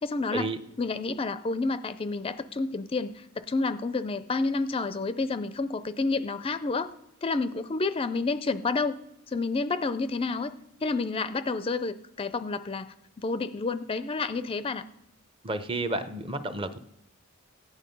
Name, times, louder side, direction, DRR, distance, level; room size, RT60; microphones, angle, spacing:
voice 1, 0.0-0.5 0.8-6.9 7.2-9.0 9.3-10.5 10.8-14.8, left 3 dB, 25° left, 12 dB, 0.4 m, -29 dB
voice 2, 15.4-16.8, right 2 dB, 25° right, 11 dB, 0.7 m, -31 dB
15.5 x 9.7 x 5.3 m, 0.84 s
head